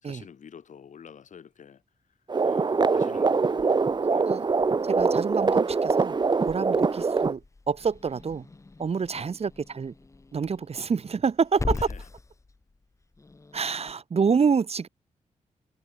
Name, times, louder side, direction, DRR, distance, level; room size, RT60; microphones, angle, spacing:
voice 1, 0.0-1.8 2.4-3.8 4.1-4.4 9.1-9.3 11.7-12.1, left 7 dB, 70° left, 6.1 m, -48 dB
sound 1, 2.3-7.3, right 4 dB, 35° right, 1.0 m, -23 dB
Growling / Hiss, 3.2-13.9, left 3 dB, 25° left, 1.1 m, -41 dB
voice 2, 4.9-7.4 7.7-8.4 8.8-9.9 10.3-11.8 13.5-14.9, right 5 dB, 50° right, 2.4 m, -27 dB
cardioid pair, 85°, 13 cm